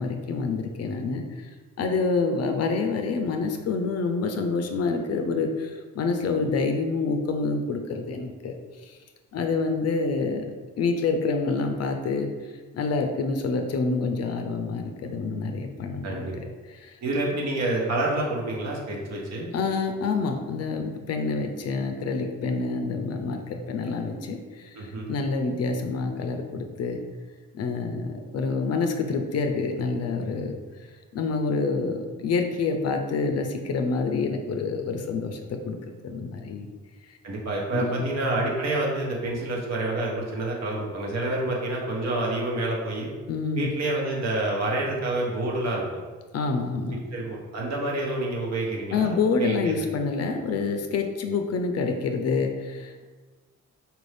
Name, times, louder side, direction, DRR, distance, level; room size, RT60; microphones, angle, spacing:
voice 1, 0.0-1.5 1.8-9.0 9.3-10.5 10.8-17.0 19.5-27.0 27.5-30.6 31.1-35.8 36.0-36.7 37.1-37.2 37.7-38.1 43.3-43.7 46.3-47.0 48.9-53.1, left 4 dB, 55° left, 5 dB, 0.5 m, -27 dB
voice 2, 17.0-19.5 24.7-25.1 37.2-43.1 43.6-45.8 47.1-49.8, right 2 dB, 60° right, -2 dB, 1.1 m, -28 dB
4.3 x 2.6 x 3.3 m, 1.4 s
cardioid pair, 90°, 30 cm